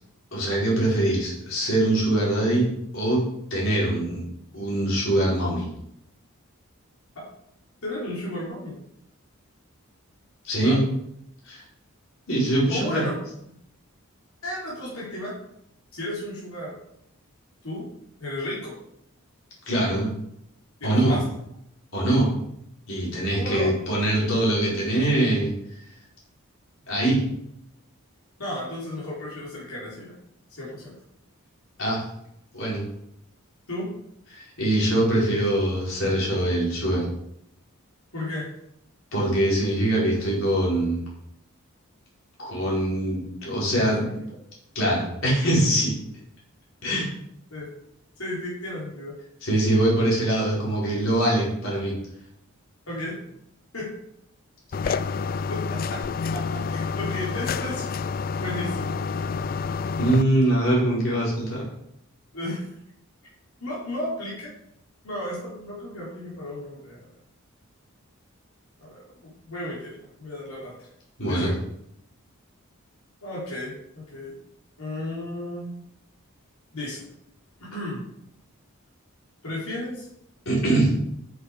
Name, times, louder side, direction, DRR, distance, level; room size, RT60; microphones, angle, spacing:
voice 1, 0.3-3.2 3.5-4.2 4.5-5.7 10.4-10.9 11.5-11.6 12.3-13.0 19.7-20.1 20.8-21.2 21.9-22.3 22.9-25.5 26.9-27.2 31.8-32.0 32.5-32.8 34.3-37.1 39.1-41.0 42.4-44.1 44.7-45.9 46.8-47.1 49.4-51.9 60.0-61.6 71.2-71.5 80.4-80.9, right 1 dB, 65° left, -5 dB, 4.7 m, -23 dB
voice 2, 7.8-8.8 10.6-10.8 12.7-13.2 14.4-15.3 15.9-16.8 17.6-17.8 18.2-18.7 20.8-21.2 23.4-23.7 28.4-30.1 30.5-30.9 33.7-33.9 38.1-38.5 43.8-44.1 47.5-47.7 48.2-49.1 52.9-53.2 53.7-53.9 54.8-55.0 55.5-56.0 56.3-57.9 58.4-59.0 62.3-62.7 63.6-64.5 65.0-67.1 68.8-70.7 71.2-71.6 73.2-73.7 74.1-74.3 74.8-75.7 76.7-77.1 77.6-78.0 79.4-80.1, left 1 dB, 85° left, -6 dB, 3.8 m, -34 dB
sound 1, 54.7-60.2, left 5 dB, 40° left, 0.3 m, -28 dB
8.7 x 7.9 x 5.0 m, 0.76 s
head